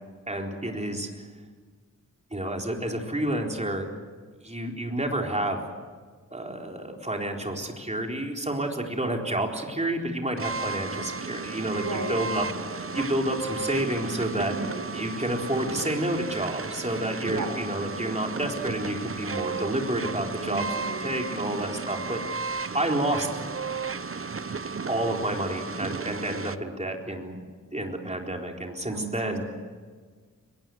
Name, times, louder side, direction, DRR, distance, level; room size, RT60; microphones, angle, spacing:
voice 1, 0.3-1.1 2.3-3.9 4.4-5.6 6.3-14.5 14.9-23.3 24.9-27.4 27.7-29.4, right 1 dB, 20° right, 1 dB, 4.1 m, -30 dB
sound 1, 10.4-26.6, right 4 dB, 40° right, 0.9 m, -34 dB
voice 2, 11.7-12.2 14.3-14.9 17.2-17.5 20.4-21.6 28.9-29.4, right 3 dB, 85° right, 6 dB, 4.2 m, -35 dB
24.0 x 21.5 x 7.9 m, 1.5 s
wide cardioid pair, 90°, 32 cm